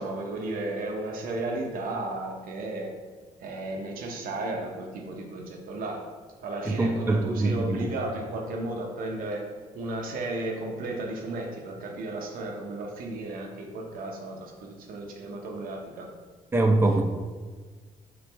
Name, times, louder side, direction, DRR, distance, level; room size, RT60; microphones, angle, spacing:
voice 1, 0.0-2.9 3.4-6.0 6.4-9.4 9.7-16.1, right 2 dB, 85° right, 1 dB, 0.8 m, -34 dB
voice 2, 6.7-7.9 16.5-17.0, right 2 dB, 15° right, 2 dB, 0.6 m, -23 dB
5.0 x 3.1 x 3.4 m, 1.4 s
cardioid pair, 115°, 14 cm